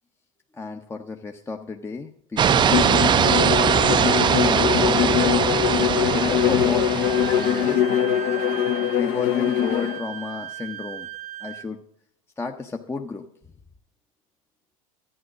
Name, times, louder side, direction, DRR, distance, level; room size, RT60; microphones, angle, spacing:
voice 1, 0.5-3.8 4.4-5.6 6.1-6.9 7.3-8.0 8.9-11.1 11.4-11.8 12.4-13.3, left 4 dB, 15° left, 4 dB, 0.7 m, -33 dB
sound 1, 2.4-7.8, right 8 dB, 25° right, 0.4 m, -21 dB
Bowed string instrument, 2.6-10.0, left 10 dB, 55° left, 0.8 m, -22 dB
Wind instrument woodwind instrument, 7.0-11.7, right 12 dB, 60° right, 0.8 m, -37 dB
11.0 x 9.2 x 6.2 m, 0.71 s
hypercardioid pair, 85°, 18 cm